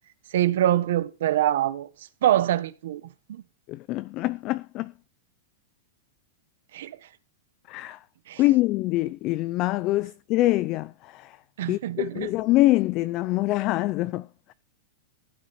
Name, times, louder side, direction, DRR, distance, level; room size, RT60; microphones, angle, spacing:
voice 1, 0.3-1.9 2.2-3.0 3.3-3.4 6.7-7.0 8.3-8.4 11.6-12.3, right 12 dB, 70° right, 1.4 m, -24 dB
voice 2, 3.7-4.9 7.7-8.0 8.4-11.4 11.7-14.5, left 17 dB, 30° left, 0.5 m, -25 dB
15.5 x 9.1 x 4.3 m
supercardioid pair, 165°, 0 cm